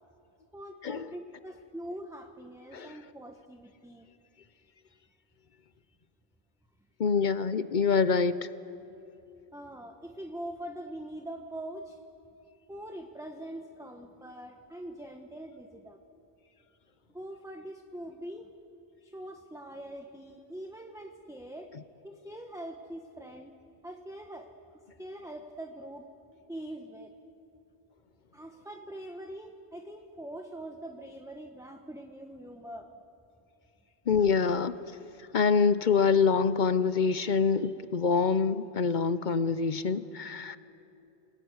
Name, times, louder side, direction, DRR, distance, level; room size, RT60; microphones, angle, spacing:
voice 1, 0.5-4.1 9.5-12.0 12.7-16.0 17.1-18.5 19.0-21.7 22.0-23.5 23.8-24.5 25.0-26.1 26.5-27.1 28.3-32.9, right 1 dB, 5° right, 3 dB, 1.1 m, -43 dB
voice 2, 7.0-8.4 34.1-34.8 35.3-40.6, left 5 dB, 50° left, 14 dB, 0.8 m, -25 dB
27.5 x 19.0 x 9.5 m, 2.8 s
omnidirectional pair, 1.1 m